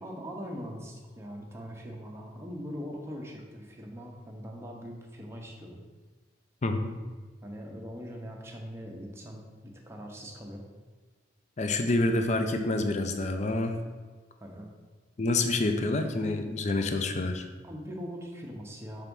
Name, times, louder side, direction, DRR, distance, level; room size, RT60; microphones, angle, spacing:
voice 1, 0.0-5.8 7.4-10.6 14.4-14.7 17.6-19.0, equal, 15° right, 0 dB, 0.9 m, -41 dB
voice 2, 11.6-13.8 15.2-17.4, left 2 dB, 40° left, 6 dB, 0.5 m, -27 dB
5.8 x 3.5 x 5.3 m, 1.4 s
head